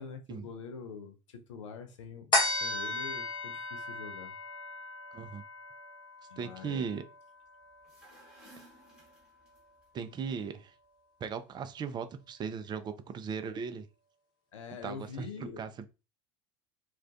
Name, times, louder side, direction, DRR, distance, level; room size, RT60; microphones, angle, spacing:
voice 1, 0.0-4.3 6.3-6.9 14.5-15.6, left 5 dB, 80° left, 0.5 m, -45 dB
sound 1, 2.3-9.1 9.5-9.6, left 2 dB, 30° left, 0.9 m, -36 dB
voice 2, 5.1-5.4 6.4-7.0 9.9-10.7 11.2-13.9 14.8-15.9, right 6 dB, 30° right, 0.4 m, -38 dB
sound 2, 7.7-9.9, right 1 dB, 5° right, 1.2 m, -57 dB
2.3 x 2.1 x 2.5 m
hypercardioid pair, 75°, 16 cm